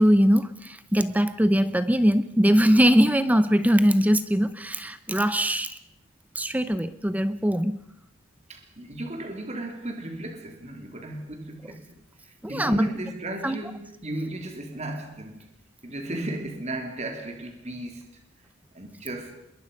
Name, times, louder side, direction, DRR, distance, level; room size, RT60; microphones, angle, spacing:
voice 1, 0.0-5.8 6.4-7.8 12.4-12.9 13.4-13.6, equal, 10° right, 0.8 m, -21 dB
voice 2, 8.5-11.8 12.2-15.5 15.8-18.2 18.7-19.3, right 1 dB, 35° right, 3.0 m, -35 dB
26.5 x 22.5 x 5.3 m
head